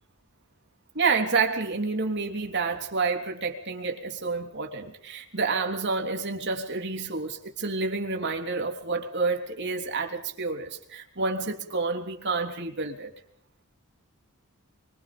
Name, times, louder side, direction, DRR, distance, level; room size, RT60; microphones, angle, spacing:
voice 1, 1.0-13.1, right 4 dB, 50° right, 3 dB, 3.5 m, -29 dB
28.0 x 24.5 x 5.3 m, 0.64 s
head